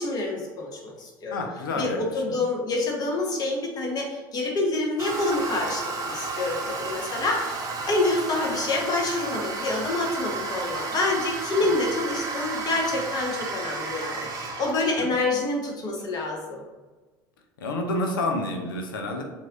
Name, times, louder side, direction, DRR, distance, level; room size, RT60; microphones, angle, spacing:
voice 1, 0.0-1.4 1.8-16.6, left 2 dB, 35° left, -1 dB, 1.2 m, -27 dB
voice 2, 1.3-2.0 2.3-2.4 15.0-15.1 17.6-19.2, left 2 dB, 70° left, 3 dB, 0.8 m, -29 dB
Toilet flush, 5.0-14.7, right 3 dB, 30° right, 0.9 m, -32 dB
7.4 x 2.8 x 2.6 m, 1.3 s
figure-of-eight pair, 75°, 12 cm